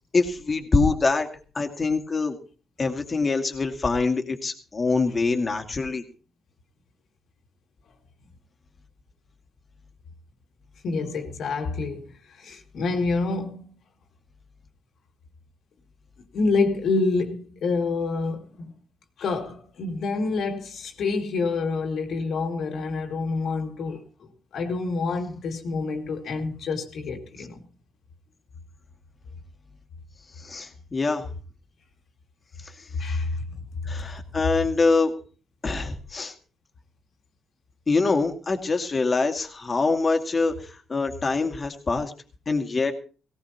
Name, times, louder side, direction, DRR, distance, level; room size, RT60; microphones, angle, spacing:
voice 1, 0.1-1.3 1.5-2.4 2.8-6.0 30.4-31.3 32.6-33.2 33.9-35.1 35.6-36.3 37.9-42.1 42.5-42.9, left 3 dB, 30° left, 2.3 m, -24 dB
voice 2, 10.8-13.7 16.3-18.7 19.2-27.6 33.0-33.4, left 3 dB, 65° left, 2.5 m, -27 dB
18.0 x 17.5 x 2.9 m
cardioid pair, 90°, 0 cm